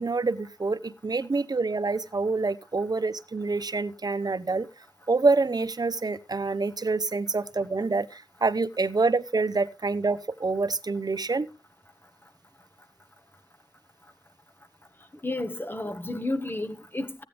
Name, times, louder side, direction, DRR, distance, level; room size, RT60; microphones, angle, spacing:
voice 1, 0.0-4.7 5.1-11.5, right 3 dB, 55° right, 0.8 m, -26 dB
voice 2, 15.2-17.2, left 2 dB, 25° left, 1.1 m, -31 dB
14.5 x 9.0 x 3.3 m
wide cardioid pair, 65°, 8 cm